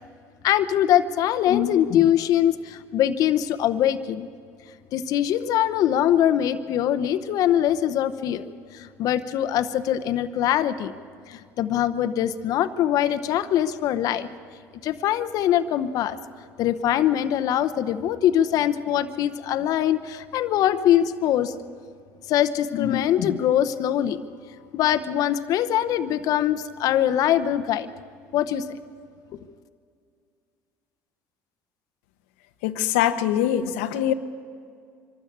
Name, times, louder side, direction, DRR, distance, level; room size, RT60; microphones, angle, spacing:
voice 1, 0.4-4.3 4.9-8.4 8.7-10.9 11.3-14.3 14.8-16.2 16.6-21.5 22.3-24.2 24.7-27.9 28.3-28.6, left 11 dB, 60° left, 10 dB, 0.8 m, -22 dB
voice 2, 32.6-34.1, left 11 dB, 90° left, 9 dB, 0.9 m, -23 dB
24.0 x 13.0 x 8.6 m, 2.3 s
supercardioid pair, 100°, 7 cm